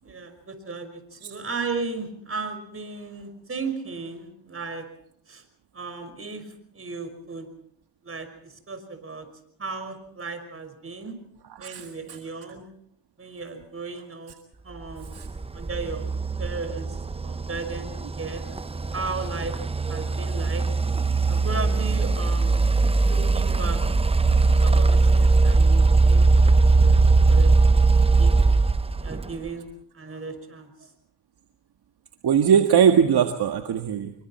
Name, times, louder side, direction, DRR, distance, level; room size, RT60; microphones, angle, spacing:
voice 1, 0.0-4.9 5.3-5.4 5.7-6.5 6.7-7.5 8.0-9.3 9.6-11.2 11.6-12.6 13.2-14.3 14.6-15.2 15.5-16.1 16.4-16.9 17.2-18.4 18.9-19.5 19.9-20.6 21.3-22.6 23.0-23.8 24.6-27.8 28.2-28.3 29.0-29.7 29.9-30.9, right 4 dB, 30° right, 7 dB, 5.8 m, -35 dB
voice 2, 11.6-12.2 15.1-15.3 32.2-34.1, right 8 dB, 55° right, 6 dB, 1.8 m, -20 dB
sound 1, 15.0-29.5, right 3 dB, 10° right, 0.7 m, -20 dB
26.5 x 23.5 x 4.4 m, 0.68 s
cardioid pair, 85°, 48 cm